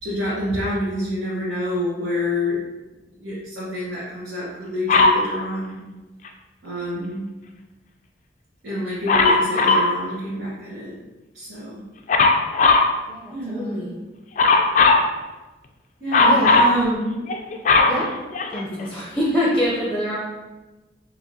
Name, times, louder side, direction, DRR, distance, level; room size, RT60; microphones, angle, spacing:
voice 1, 0.0-2.7 3.2-5.8 6.6-7.3 8.6-11.0 11.3-11.8 13.3-13.8 16.0-17.2, left 1 dB, 80° right, -11 dB, 1.3 m, -27 dB
Dog, 4.9-5.2 9.1-9.9 12.1-12.9 14.4-15.1 16.1-16.8 17.3-18.8 19.5-19.6, left 3 dB, 40° left, 0.3 m, -16 dB
voice 2, 13.1-13.9 16.2-17.0 17.9-18.1 18.5-20.2, equal, 5° left, -5 dB, 0.6 m, -25 dB
4.5 x 2.9 x 2.8 m, 1.1 s
head